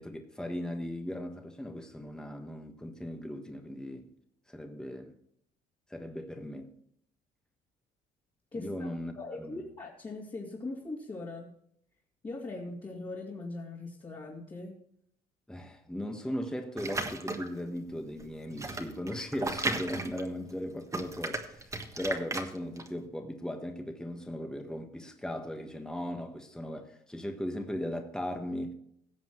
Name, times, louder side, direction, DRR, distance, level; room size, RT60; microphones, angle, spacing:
voice 1, 0.0-4.1 4.5-5.1 5.9-6.7 8.6-9.6 15.5-28.7, equal, 5° left, 1.4 m, -38 dB
voice 2, 8.5-8.9 9.2-11.5 12.2-14.8, left 2 dB, 30° left, 2.6 m, -40 dB
sound 1, 16.8-17.6 18.2-20.6 20.9-22.9, right 2 dB, 20° right, 1.5 m, -35 dB
17.0 x 7.2 x 3.1 m
cardioid pair, 110°, 17 cm